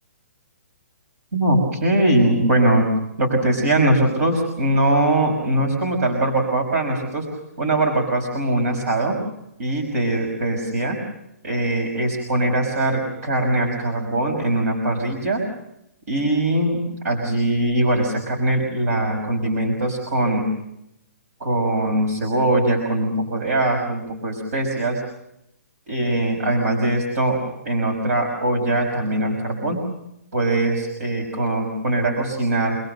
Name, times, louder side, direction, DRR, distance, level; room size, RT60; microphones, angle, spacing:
voice 1, 1.3-2.9 3.2-7.2 7.6-9.2 9.6-11.0 11.4-15.4 16.1-20.4 21.4-25.0 25.9-29.9 30.3-32.8, right 1 dB, 70° right, 2 dB, 5.9 m, -21 dB
28.0 x 20.0 x 6.7 m, 0.82 s
hypercardioid pair, 165°, 9 cm